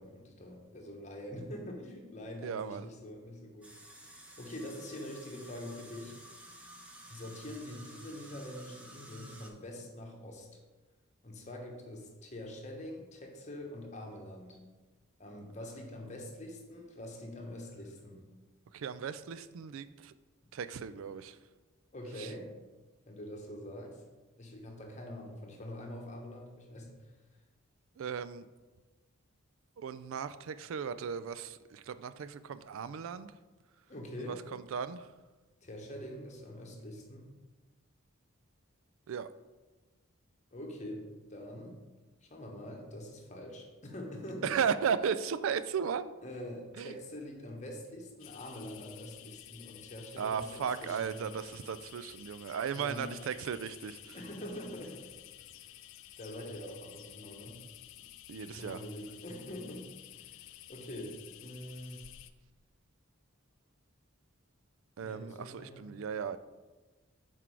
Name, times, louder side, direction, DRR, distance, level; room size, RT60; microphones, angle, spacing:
voice 1, 0.0-3.7 4.1-6.2 7.1-10.6 11.2-14.6 15.2-18.3 21.9-22.5 23.1-24.0 24.4-27.1 33.9-34.5 35.6-37.3 40.5-41.8 42.2-44.6 46.2-51.1 52.7-53.1 54.1-55.1 55.5-55.7 56.2-57.6 58.0-58.1 58.5-62.1 65.0-65.9, left 1 dB, 35° left, 1 dB, 1.0 m, -45 dB
voice 2, 2.4-2.9 18.7-20.1 20.5-21.4 22.2-22.3 28.0-28.5 29.8-33.3 34.3-35.1 39.1-39.3 44.4-46.1 46.8-47.0 50.2-54.2 58.3-58.8 65.0-66.4, right 7 dB, 70° right, 14 dB, 0.3 m, -36 dB
sound 1, 3.6-9.5, right 1 dB, 5° right, 0.6 m, -52 dB
sound 2, 48.2-62.3, left 13 dB, 60° left, 0.3 m, -52 dB
6.0 x 4.5 x 4.6 m, 1.2 s
head